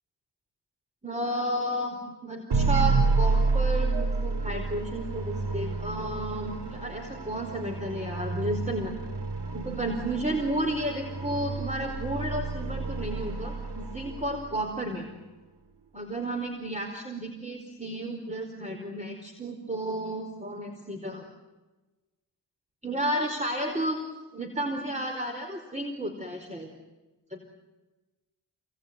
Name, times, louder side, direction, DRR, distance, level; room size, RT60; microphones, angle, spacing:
voice 1, 1.0-8.9 9.5-15.1 15.9-21.3 22.8-24.0 24.3-26.7 27.3-27.4, right 1 dB, 15° right, 3 dB, 4.7 m, -32 dB
sound 1, 2.5-14.7, right 3 dB, 80° right, 3.0 m, -29 dB
28.5 x 21.0 x 9.6 m, 1.1 s
cardioid pair, 65°, 41 cm